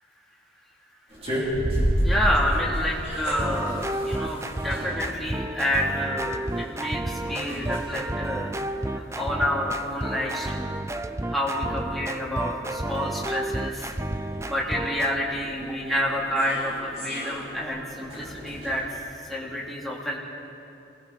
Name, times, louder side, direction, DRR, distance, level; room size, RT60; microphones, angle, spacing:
sound 1, 1.1-18.7, equal, 35° right, 5.4 m, -33 dB
voice 1, 2.0-10.7 11.3-13.9 14.4-20.2, equal, ahead, -6 dB, 3.3 m, -29 dB
sound 2, 3.3-15.2, right 1 dB, 15° right, 0.5 m, -31 dB
25.5 x 19.0 x 5.4 m, 2.7 s
head